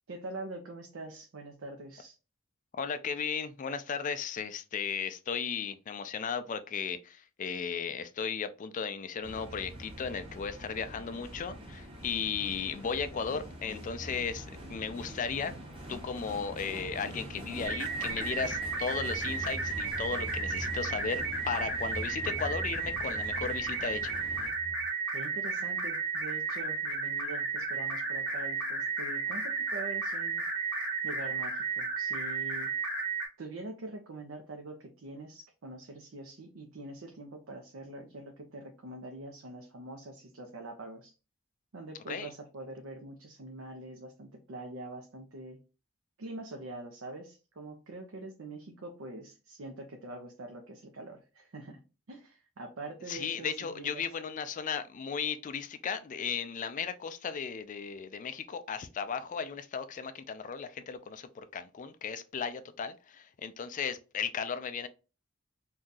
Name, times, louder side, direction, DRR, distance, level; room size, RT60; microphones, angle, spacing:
voice 1, 0.1-2.2 25.1-30.4 31.0-32.7 33.4-41.1 41.7-45.6 46.2-51.8 52.1-54.0, right 2 dB, 70° right, 0.6 m, -44 dB
voice 2, 2.7-15.5 15.9-24.2 42.1-42.3 53.1-64.9, left 6 dB, 40° left, 0.3 m, -35 dB
sound 1, 9.2-24.5, equal, 25° right, 0.8 m, -44 dB
sound 2, 13.7-16.3 16.6-16.9 17.2-17.3 19.8-24.9, equal, 80° left, 0.9 m, -47 dB
sound 3, 17.6-33.3, right 4 dB, 5° right, 1.0 m, -33 dB
2.7 x 2.3 x 3.8 m
head